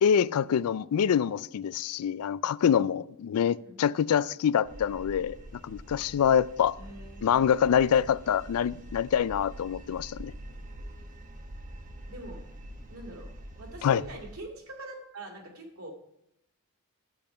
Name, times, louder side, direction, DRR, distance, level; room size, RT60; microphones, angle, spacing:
voice 1, 0.0-5.4 5.6-6.8 7.2-10.3 13.8-14.0, left 8 dB, 75° left, 0.3 m, -25 dB
voice 2, 3.6-3.9 6.8-7.7 12.1-12.4 12.9-13.3 13.6-15.9, right 2 dB, 70° right, 2.7 m, -44 dB
sound 1, 4.6-14.4, right 1 dB, 35° right, 1.1 m, -45 dB
10.5 x 8.7 x 5.1 m
head